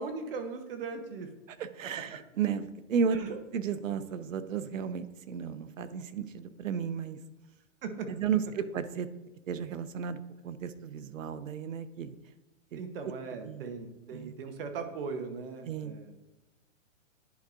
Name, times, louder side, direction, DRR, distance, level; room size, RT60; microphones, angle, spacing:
voice 1, 0.0-1.3 3.1-3.4 7.8-8.1 12.7-16.1, right 4 dB, 45° right, 7 dB, 1.0 m, -39 dB
voice 2, 1.6-3.2 3.5-7.2 8.1-9.1 9.5-12.1 12.7-12.8 13.4-13.7 14.1-14.3 15.7-15.9, right 7 dB, 85° right, 13 dB, 0.7 m, -33 dB
10.5 x 4.6 x 2.6 m, 1.1 s
hypercardioid pair, 150°, 39 cm